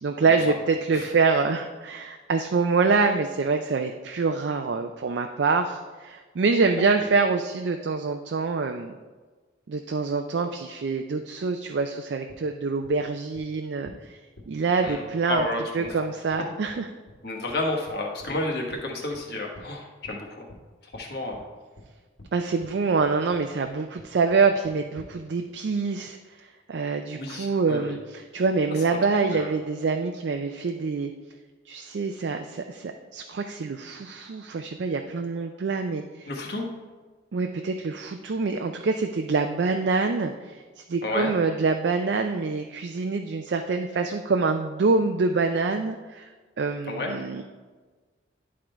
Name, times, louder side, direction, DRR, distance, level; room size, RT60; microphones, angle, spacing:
voice 1, 0.0-8.9 9.7-14.2 14.5-15.5 15.7-16.9 22.3-31.1 31.7-36.3 37.3-46.3 46.6-47.4, right 4 dB, 65° right, 5 dB, 0.4 m, -26 dB
sound 1, 12.3-12.4 12.8-12.9 13.3-13.4 13.9-14.0 14.4-14.5 14.9-15.0 15.4-15.5 15.8-15.9 16.3-16.4 16.7-16.8 17.1-17.2 17.5-17.6 17.9-18.4 18.7-18.8 19.1-19.2 19.5-19.7 20.0-20.2 20.5-20.6 20.9-21.0 21.3-21.4 21.8-21.9 22.2-22.3 22.6-22.7 23.0-23.4 23.7-23.8 24.0-24.4 24.6-25.1, left 1 dB, 80° left, 2.0 m, -47 dB
voice 2, 15.3-15.9 17.2-20.4 20.9-21.4 27.1-27.9 28.9-29.0 29.3-29.5 36.3-36.7 41.0-41.4 46.9-47.1, left 2 dB, 55° left, 0 dB, 1.3 m, -31 dB
10.5 x 3.7 x 4.4 m, 1.3 s
head